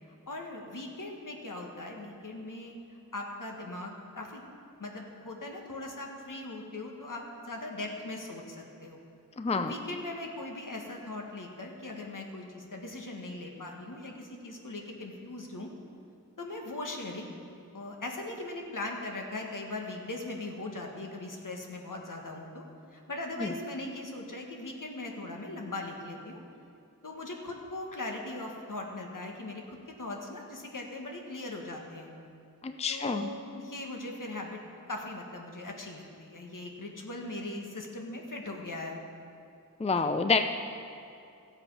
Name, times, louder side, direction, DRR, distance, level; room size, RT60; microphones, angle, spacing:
voice 1, 0.3-2.7 3.1-4.4 4.8-9.0 9.5-15.7 16.4-17.3 17.7-22.6 22.9-26.4 27.0-32.1 32.9-34.6 34.9-39.0, left 2 dB, 65° left, 1 dB, 1.7 m, -40 dB
voice 2, 9.4-9.7 23.4-23.5 32.6-33.3 39.8-40.4, left 4 dB, 20° left, 8 dB, 0.5 m, -28 dB
14.5 x 8.0 x 5.6 m, 2.7 s
wide cardioid pair, 70°, 34 cm